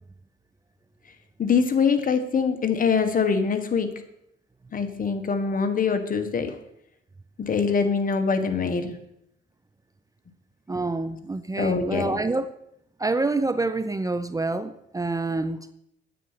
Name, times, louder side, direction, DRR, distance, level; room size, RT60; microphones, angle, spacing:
voice 1, 1.4-3.9 4.7-6.6 7.4-9.0 11.6-12.2, left 5 dB, 45° left, 8 dB, 1.5 m, -24 dB
voice 2, 10.7-12.5 13.0-15.7, right 3 dB, 15° right, 12 dB, 0.6 m, -27 dB
9.3 x 9.3 x 5.8 m, 0.77 s
cardioid pair, 90°, 20 cm